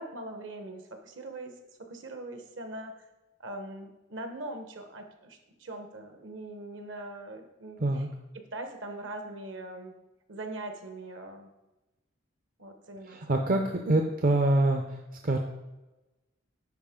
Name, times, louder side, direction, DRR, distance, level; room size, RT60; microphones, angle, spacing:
voice 1, 0.0-1.6 1.9-3.1 3.4-8.1 8.5-9.9 10.3-11.5 12.6-13.2, right 1 dB, 65° right, 6 dB, 1.0 m, -41 dB
voice 2, 13.1-15.0 15.2-15.4, right 2 dB, 45° right, 3 dB, 0.5 m, -25 dB
10.5 x 4.4 x 3.6 m, 1.0 s
head